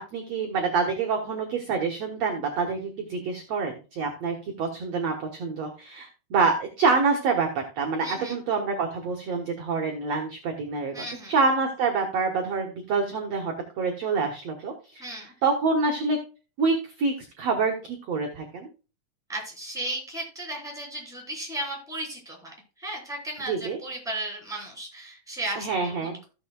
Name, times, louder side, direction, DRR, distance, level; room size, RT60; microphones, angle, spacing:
voice 1, 0.0-15.1 15.4-16.2 16.6-18.7 23.5-23.8 25.6-26.2, right 4 dB, 60° right, 2 dB, 1.9 m, -27 dB
voice 2, 8.0-8.4 10.9-11.3 15.0-15.3 19.3-26.3, right 1 dB, ahead, 0 dB, 3.7 m, -35 dB
16.0 x 7.0 x 2.3 m, 0.33 s
omnidirectional pair, 4.7 m